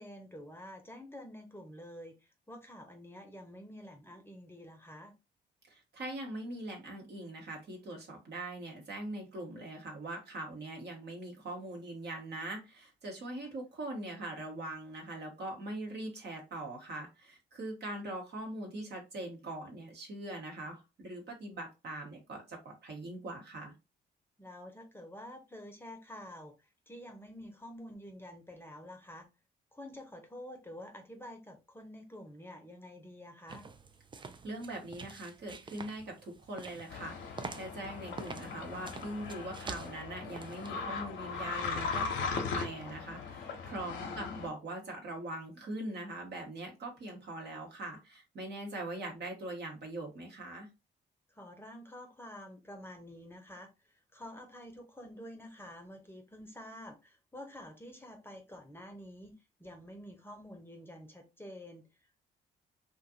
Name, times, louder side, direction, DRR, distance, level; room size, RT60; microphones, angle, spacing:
voice 1, 0.0-5.1 24.4-29.3 29.7-33.7 44.0-44.2 51.3-62.2, left 1 dB, 10° left, 0.8 m, -49 dB
voice 2, 5.7-23.7 34.2-50.7, right 1 dB, 55° right, 1.1 m, -42 dB
sound 1, 33.5-40.7, right 4 dB, 25° right, 0.4 m, -47 dB
sound 2, 36.9-44.5, left 5 dB, 70° left, 0.7 m, -38 dB
2.5 x 2.4 x 2.7 m
hypercardioid pair, 50°, 21 cm